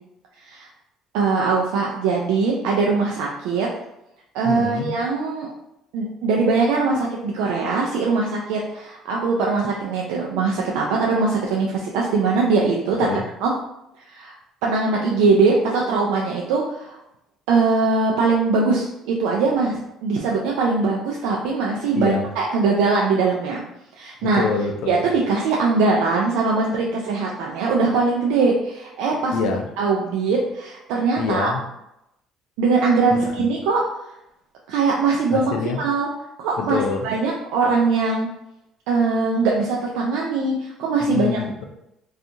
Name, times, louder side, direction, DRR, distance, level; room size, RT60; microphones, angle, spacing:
voice 1, 1.1-3.7 4.3-5.5 5.9-13.1 13.4-13.5 14.0-14.3 14.6-17.0 17.5-23.6 24.0-24.4 24.9-29.5 29.8-31.5 32.6-33.8 34.7-35.5 35.8-36.1 36.4-38.3 38.9-41.3, right 4 dB, 85° right, -2 dB, 0.3 m, -21 dB
voice 2, 4.4-4.9 13.0-13.2 21.9-22.3 24.2-25.0 29.3-29.7 31.2-31.6 33.1-33.5 35.3-35.8 36.6-37.1 41.0-41.6, left 5 dB, 75° left, 4 dB, 0.4 m, -26 dB
2.7 x 2.3 x 2.6 m, 0.85 s
supercardioid pair, 90°, 0 cm